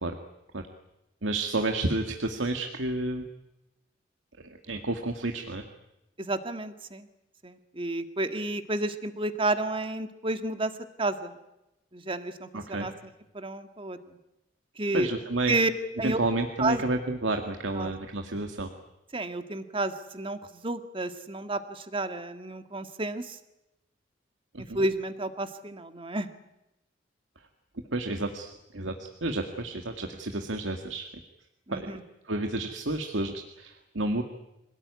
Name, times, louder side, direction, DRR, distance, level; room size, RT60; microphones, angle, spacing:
voice 1, 1.2-3.2 4.4-5.6 12.5-12.9 14.9-15.5 16.0-18.7 24.5-24.8 27.9-31.1 31.7-32.0 32.3-34.2, right 2 dB, 85° right, 5 dB, 2.0 m, -30 dB
voice 2, 6.2-7.1 7.4-10.7 11.0-11.3 11.9-12.9 13.3-14.0 14.8-15.1 15.5-15.7 16.0-16.2 16.6-16.8 17.7-17.9 19.1-23.4 24.7-26.3 31.7-32.0, right 2 dB, 30° right, 8 dB, 1.9 m, -31 dB
26.5 x 18.0 x 9.7 m, 0.90 s
head